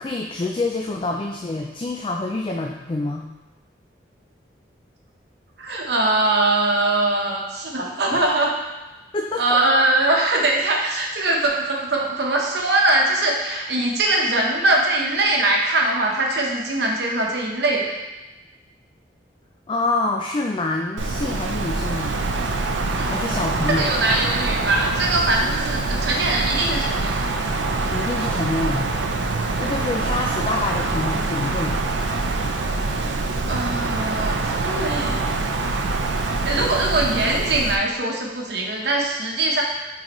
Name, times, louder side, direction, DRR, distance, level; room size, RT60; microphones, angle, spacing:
voice 1, 0.0-3.3 8.1-8.3 9.1-9.6 19.7-22.2 23.0-23.9 27.9-28.9 29.6-31.8, left 2 dB, 30° left, 1 dB, 0.3 m, -26 dB
voice 2, 5.6-8.5 9.4-18.0 23.0-27.1 29.6-29.7 33.4-35.2 36.4-39.6, right 2 dB, 65° right, -1 dB, 1.0 m, -22 dB
Wind, 21.0-37.7, right 3 dB, 85° right, 0.5 m, -24 dB
9.4 x 3.9 x 3.0 m, 1.1 s
head